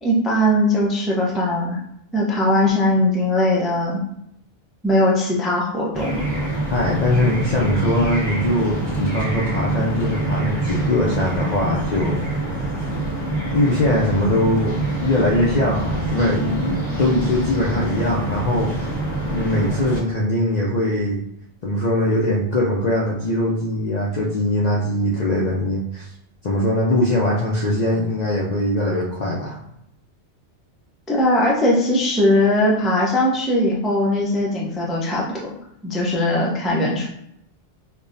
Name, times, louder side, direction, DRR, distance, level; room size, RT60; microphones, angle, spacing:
voice 1, 0.0-1.8 2.1-4.0 4.8-6.3 31.1-35.5 35.8-37.1, left 1 dB, ahead, -4 dB, 0.4 m, -20 dB
sound 1, 5.9-20.0, right 2 dB, 15° right, 1.2 m, -25 dB
voice 2, 6.7-12.2 13.5-18.9 19.3-21.2 21.6-26.1 26.4-29.6, left 1 dB, 55° left, -3 dB, 0.5 m, -21 dB
5.3 x 2.2 x 2.5 m, 0.77 s
omnidirectional pair, 1.2 m